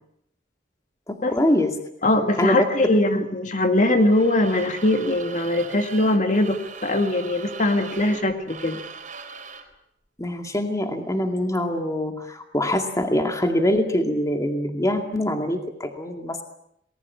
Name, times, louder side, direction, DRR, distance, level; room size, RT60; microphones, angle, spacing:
voice 1, 1.1-1.7 2.4-2.6 10.2-16.4, left 1 dB, 20° left, 4 dB, 2.2 m, -24 dB
voice 2, 2.0-8.8, left 1 dB, 45° left, 6 dB, 2.1 m, -21 dB
sound 1, 4.0-9.7, right 5 dB, 45° right, 4.2 m, -40 dB
29.5 x 20.0 x 8.6 m, 0.75 s
head